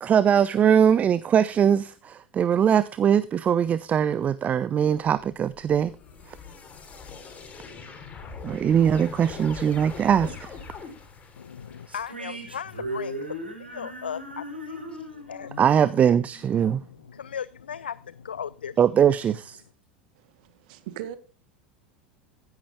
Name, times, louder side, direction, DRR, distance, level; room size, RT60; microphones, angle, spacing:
voice 1, 0.0-5.9 6.3-6.4 8.4-10.5 15.6-16.8 18.8-19.6, right 8 dB, 25° right, 0.5 m, -21 dB
sound 1, 5.0-12.0, left 5 dB, 25° left, 3.0 m, -42 dB
voice 2, 11.4-15.6 16.8-18.8, left 8 dB, 75° left, 0.4 m, -37 dB
sound 2, 11.9-17.2, equal, 85° right, 4.7 m, -38 dB
voice 3, 20.1-21.2, right 11 dB, 55° right, 1.5 m, -39 dB
15.5 x 10.5 x 2.2 m
figure-of-eight pair, 80°, 5 cm